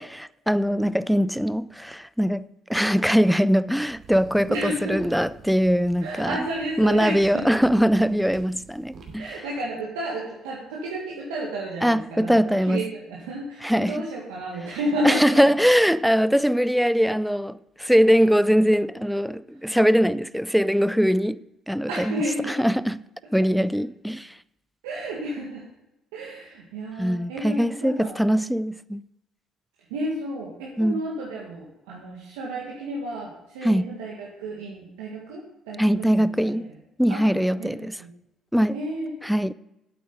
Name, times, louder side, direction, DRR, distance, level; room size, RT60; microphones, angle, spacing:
voice 1, 0.0-6.4 6.8-9.3 11.8-12.8 13.6-14.0 15.0-21.4 21.7-23.0 23.3-24.4 27.0-29.0 30.8-31.0 33.6-33.9 35.8-36.7 37.0-38.0 38.5-38.8 39.2-39.5, equal, ahead, 0.4 m, -22 dB
sound 1, 3.9-9.2, right 4 dB, 60° right, 2.7 m, -46 dB
voice 2, 4.5-5.0 6.0-7.5 9.2-15.5 21.9-22.6 23.4-23.5 24.8-25.6 26.1-28.2 29.9-36.7 37.1-37.3 37.6-38.1 38.7-39.2, right 1 dB, 85° right, 1.7 m, -32 dB
8.6 x 8.5 x 5.4 m
hypercardioid pair, 60°, 0 cm